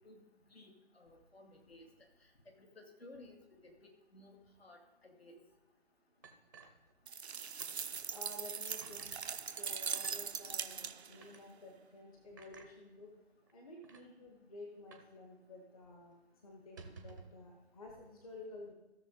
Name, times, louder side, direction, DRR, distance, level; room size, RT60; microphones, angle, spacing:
voice 1, 0.5-1.9 2.5-3.4 3.6-5.4, left 2 dB, 65° left, 2 dB, 2.5 m, -57 dB
sound 1, 6.2-7.3 7.6-7.8 8.2-8.3 8.8-9.1 9.9-10.2 11.1-11.4 12.4-12.7 13.5-13.6 13.8-14.1 14.9-15.2 15.4-15.5 15.9-16.1 16.6-17.4, right 4 dB, 20° right, 0.7 m, -55 dB
sound 2, 7.1-11.2, right 6 dB, 75° right, 0.5 m, -41 dB
voice 2, 8.1-9.2 9.5-13.1 13.5-16.1 16.4-18.7, left 2 dB, 35° left, 0 dB, 1.4 m, -52 dB
16.0 x 6.5 x 3.9 m, 1.0 s
figure-of-eight pair, 150°, 33 cm